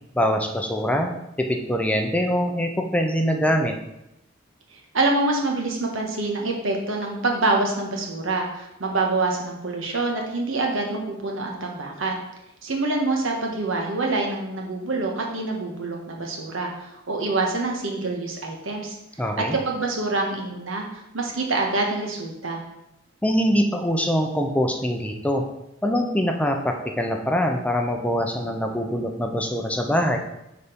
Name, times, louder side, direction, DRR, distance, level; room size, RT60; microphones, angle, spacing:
voice 1, 0.1-1.1 1.4-3.8 19.2-19.6 23.2-25.4 25.8-30.2, equal, 5° left, 3 dB, 0.6 m, -23 dB
voice 2, 4.9-12.2 12.6-19.0 19.5-22.6, right 2 dB, 75° right, 1 dB, 1.4 m, -26 dB
6.6 x 4.1 x 5.1 m, 0.87 s
head